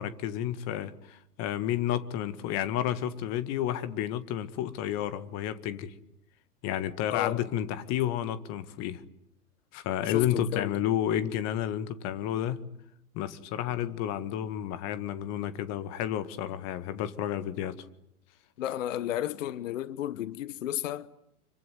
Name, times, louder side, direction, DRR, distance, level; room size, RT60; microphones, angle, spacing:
voice 1, 0.0-5.9 6.6-9.0 9.7-12.6 13.1-17.8, left 11 dB, 35° left, 1.8 m, -31 dB
voice 2, 7.1-7.4 10.0-10.8 18.6-21.1, left 12 dB, 55° left, 1.2 m, -33 dB
26.0 x 24.0 x 9.5 m
figure-of-eight pair, 105°, 45 cm